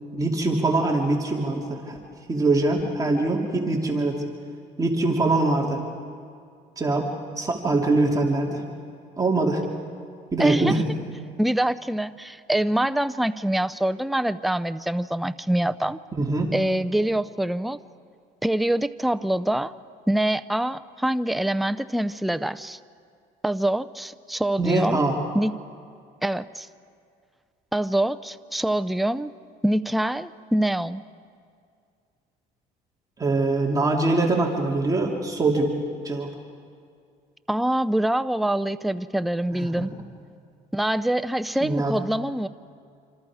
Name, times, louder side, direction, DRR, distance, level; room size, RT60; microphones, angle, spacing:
voice 1, 0.1-2.0 2.3-4.1 4.8-5.8 6.8-7.1 7.4-8.6 9.2-9.6 10.3-10.8 16.2-16.5 24.6-25.2 33.2-35.7 36.0-36.3 39.6-39.9 41.6-42.0, right 2 dB, 20° right, -1 dB, 2.8 m, -23 dB
voice 2, 10.4-10.8 11.4-16.0 16.5-17.8 18.4-19.7 20.1-22.8 23.4-25.1 25.3-25.5 26.2-26.7 27.7-29.3 29.6-31.0 37.5-39.9 40.7-42.5, right 1 dB, ahead, 12 dB, 0.5 m, -25 dB
27.0 x 26.0 x 4.9 m, 2.3 s
cardioid pair, 110°, 17 cm